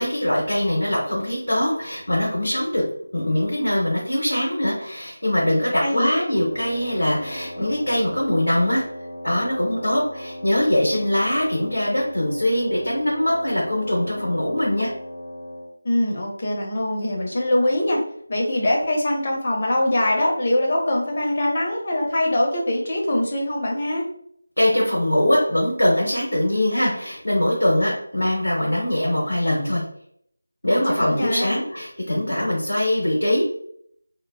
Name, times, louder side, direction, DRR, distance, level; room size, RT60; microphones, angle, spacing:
voice 1, 0.0-2.8 3.1-8.8 9.2-14.9 24.6-29.8 30.6-33.4, left 1 dB, 85° left, -4 dB, 0.8 m, -22 dB
voice 2, 5.8-6.1 15.8-18.0 18.3-24.0 30.7-31.6, left 1 dB, 40° left, -1 dB, 0.7 m, -23 dB
Wind instrument woodwind instrument, 6.4-15.7, left 1 dB, 60° left, 1.3 m, -37 dB
3.1 x 2.1 x 2.3 m, 0.67 s
figure-of-eight pair, 165°, 0 cm